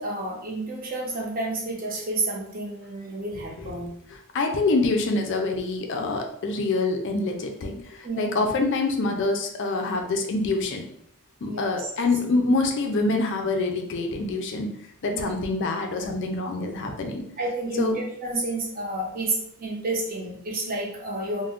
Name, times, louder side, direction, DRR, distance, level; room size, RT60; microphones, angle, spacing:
voice 1, 0.0-3.9 8.0-8.4 11.4-11.9 15.1-15.3 17.4-21.5, right 2 dB, 40° right, -2 dB, 0.7 m, -30 dB
voice 2, 3.6-10.8 11.4-14.7 15.0-17.3 17.8-18.0, left 3 dB, 55° left, 3 dB, 0.4 m, -26 dB
2.4 x 2.1 x 3.4 m, 0.70 s
head